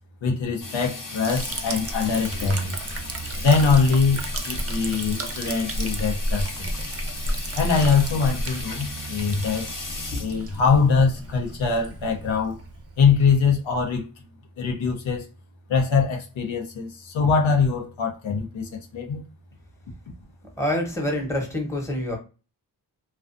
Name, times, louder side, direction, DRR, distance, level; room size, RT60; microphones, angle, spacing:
voice 1, 0.2-2.8 3.4-6.7 7.6-9.7 10.2-12.6 13.0-14.1 14.6-15.2 15.7-19.2, left 5 dB, 90° left, 0.7 m, -22 dB
Water tap faucet / Sink (filling or washing), 0.6-11.5, left 3 dB, 45° left, 0.8 m, -37 dB
Liquid, 1.2-13.6, right 1 dB, 35° right, 0.5 m, -32 dB
voice 2, 20.6-22.2, left 1 dB, 5° left, 0.9 m, -26 dB
2.4 x 2.2 x 2.5 m
wide cardioid pair, 75°, 45 cm